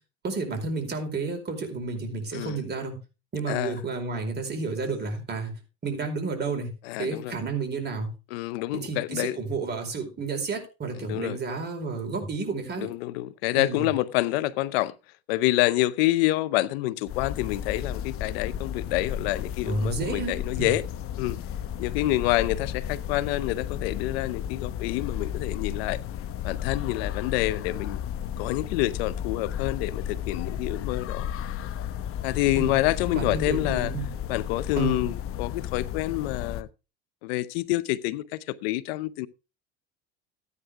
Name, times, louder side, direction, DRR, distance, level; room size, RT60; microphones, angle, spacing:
voice 1, 0.2-3.0 3.3-5.5 5.8-6.7 7.0-8.1 8.7-12.9 13.5-13.9 19.6-20.7 32.6-32.8 33.1-34.1 34.8-35.1, right 4 dB, 35° right, 4.7 m, -31 dB
voice 2, 6.8-7.3 8.3-9.4 11.0-11.4 12.8-14.9 15.3-20.8 21.2-21.4 21.8-26.0 26.4-28.0 28.4-31.3 32.2-33.9 34.3-36.7 37.2-39.3, left 17 dB, 85° left, 0.8 m, -27 dB
sound 1, 17.1-36.6, left 9 dB, 50° left, 0.9 m, -33 dB
14.0 x 9.7 x 3.6 m
supercardioid pair, 100°, 29 cm